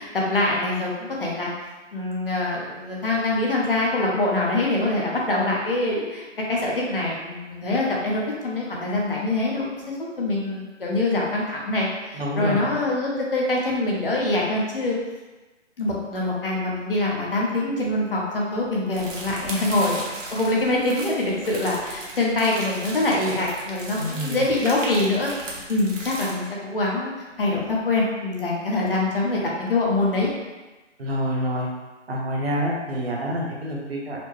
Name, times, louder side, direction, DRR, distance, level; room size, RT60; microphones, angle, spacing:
voice 1, 0.0-1.5 1.9-15.0 15.8-27.1 27.4-30.3, left 2 dB, 45° left, -3 dB, 0.7 m, -24 dB
voice 2, 12.1-12.6 24.0-24.5 31.0-31.7 32.1-34.2, equal, 55° right, -2 dB, 0.8 m, -27 dB
sound 1, 18.9-26.3, right 2 dB, 90° right, 1.1 m, -37 dB
4.1 x 2.0 x 3.0 m, 1.2 s
hypercardioid pair, 170°, 37 cm